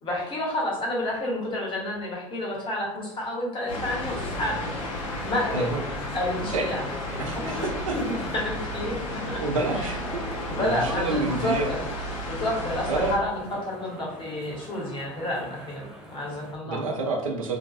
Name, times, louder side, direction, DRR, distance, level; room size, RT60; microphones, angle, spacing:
voice 1, 0.0-4.7 5.0-5.7 6.1-6.8 7.4-9.4 9.7-9.9 10.5-11.8 12.3-16.8, left 1 dB, 30° left, -3 dB, 1.1 m, -30 dB
sound 1, 3.6-16.6, right 1 dB, 5° right, 0.5 m, -43 dB
sound 2, 3.7-13.2, left 1 dB, 70° left, 0.6 m, -33 dB
voice 2, 7.2-8.0 9.4-10.0 10.5-11.7 12.9-13.1 16.6-17.6, right 3 dB, 80° right, 1 dB, 0.5 m, -28 dB
2.3 x 2.2 x 2.6 m, 0.82 s
figure-of-eight pair, 70°, 17 cm